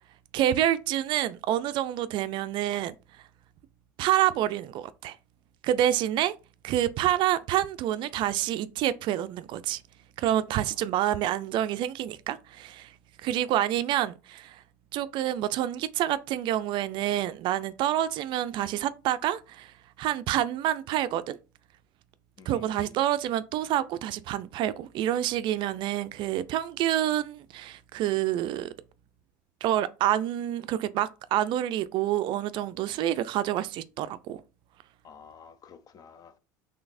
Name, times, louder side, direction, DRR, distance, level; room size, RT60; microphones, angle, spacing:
voice 1, 0.3-2.9 4.0-5.2 5.6-6.3 6.6-9.8 10.2-12.9 13.2-14.6 14.9-21.4 22.5-28.7 29.6-34.4, right 12 dB, 55° right, 0.3 m, -28 dB
voice 2, 22.4-23.0 35.0-36.4, left 6 dB, 40° left, 0.6 m, -51 dB
3.8 x 3.2 x 2.5 m
hypercardioid pair, 85°, 10 cm